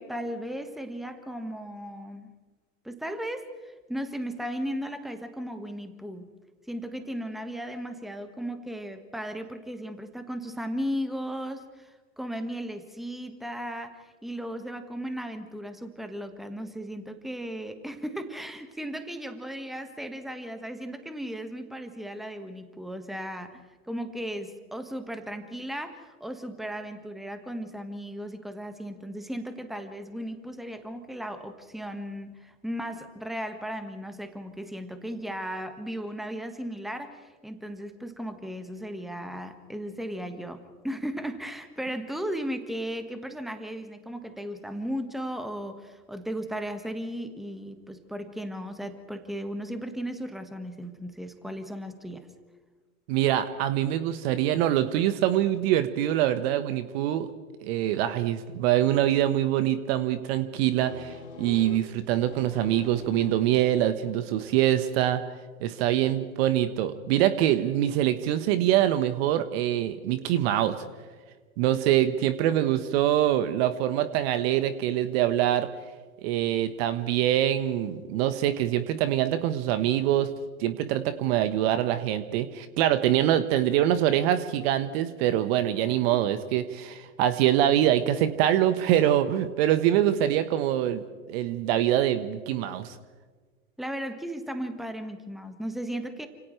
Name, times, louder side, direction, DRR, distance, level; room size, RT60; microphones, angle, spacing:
voice 1, 0.0-2.3 2.8-6.3 6.7-52.3 93.8-96.3, equal, ahead, 7 dB, 1.7 m, -36 dB
voice 2, 53.1-57.3 57.6-65.2 65.6-70.8 71.6-75.7 76.2-80.3 80.6-91.0 91.3-92.9, right 12 dB, 45° right, 11 dB, 1.4 m, -24 dB
sound 1, 60.8-64.8, left 5 dB, 70° left, 4.5 m, -45 dB
29.5 x 27.0 x 3.4 m, 1.4 s
figure-of-eight pair, 100°, 42 cm